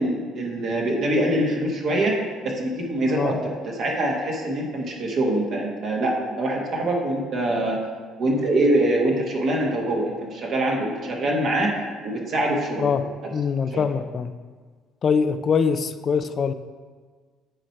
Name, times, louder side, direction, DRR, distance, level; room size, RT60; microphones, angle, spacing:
voice 1, 0.0-2.2 2.4-7.8 8.2-11.7 12.0-12.9 13.2-13.3 13.7-13.8, right 1 dB, 55° right, -1 dB, 1.6 m, -24 dB
voice 2, 3.1-3.4 12.8-14.3 15.0-16.5, left 6 dB, 40° left, 11 dB, 0.4 m, -23 dB
8.8 x 4.5 x 4.6 m, 1.5 s
supercardioid pair, 90°, 0 cm